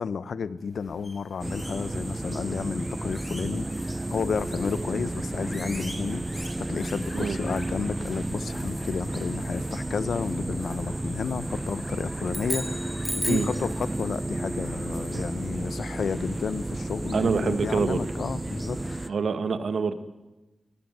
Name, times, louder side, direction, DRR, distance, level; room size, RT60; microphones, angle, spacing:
voice 1, 0.0-6.2 6.7-19.1, left 6 dB, 85° left, 16 dB, 1.0 m, -32 dB
sound 1, 0.6-17.1, left 1 dB, 20° left, 6.1 m, -47 dB
sound 2, 1.4-19.1, right 1 dB, 15° right, 0.8 m, -32 dB
sound 3, 12.3-13.6, equal, ahead, 2.4 m, -33 dB
voice 2, 17.1-18.0 19.1-20.0, right 5 dB, 75° right, 11 dB, 1.8 m, -26 dB
22.0 x 21.0 x 9.4 m, 1.1 s
wide cardioid pair, 135°, 0 cm